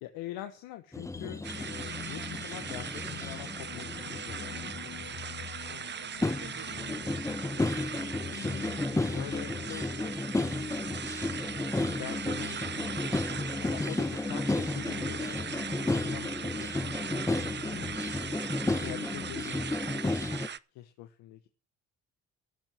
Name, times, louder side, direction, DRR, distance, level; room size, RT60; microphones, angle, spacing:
voice 1, 0.0-4.9 5.7-6.0 8.9-11.2 11.9-13.2 13.6-15.5 15.8-16.9 17.6-17.9 18.7-20.2 20.5-21.5, left 14 dB, 80° left, 1.2 m, -45 dB
sound 1, 0.9-5.7 6.2-20.5, left 2 dB, 10° left, 0.6 m, -33 dB
sound 2, 1.1-19.4, left 9 dB, 45° left, 1.0 m, -46 dB
sound 3, 1.4-20.6, right 7 dB, 30° right, 0.6 m, -40 dB
voice 2, 5.6-8.1, right 8 dB, 50° right, 1.8 m, -54 dB
14.0 x 7.3 x 7.4 m
hypercardioid pair, 60°, 36 cm